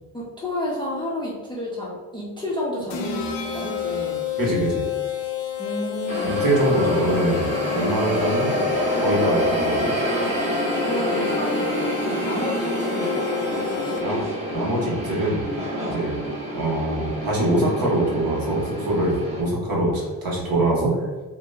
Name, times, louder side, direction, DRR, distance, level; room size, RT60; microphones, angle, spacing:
voice 1, 0.1-4.2 5.6-6.3 6.8-7.0 8.0-8.3 10.8-14.0, left 1 dB, 10° left, -6 dB, 0.5 m, -31 dB
sound 1, 2.9-14.3, left 11 dB, 65° left, 0.6 m, -30 dB
voice 2, 4.4-4.8 6.2-8.5 9.0-9.9 14.0-14.2 14.5-15.4 15.9-16.3 16.5-21.1, right 1 dB, 50° right, -4 dB, 1.1 m, -23 dB
sound 2, 6.1-19.4, equal, 15° right, 0.8 m, -27 dB
2.8 x 2.1 x 2.2 m, 1.3 s
supercardioid pair, 75°, 46 cm